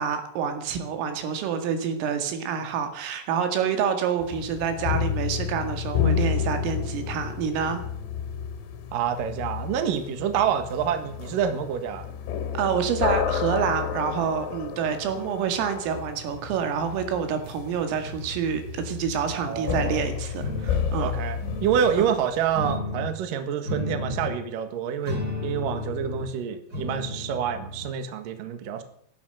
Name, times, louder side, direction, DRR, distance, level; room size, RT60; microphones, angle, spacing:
voice 1, 0.0-7.8 12.5-21.1 22.0-22.1, right 7 dB, 90° right, 7 dB, 4.7 m, -27 dB
sound 1, 4.2-22.7, left 8 dB, 90° left, 4.5 m, -31 dB
voice 2, 8.9-12.1 19.3-20.0 21.0-28.8, right 8 dB, 60° right, 8 dB, 2.5 m, -27 dB
sound 2, 18.0-19.6 20.4-20.9 21.4-21.9 22.5-23.1 23.6-24.4 25.0-26.3 26.7-27.9, left 2 dB, 25° right, 6.6 m, -33 dB
15.5 x 11.5 x 7.8 m, 0.67 s
omnidirectional pair, 5.7 m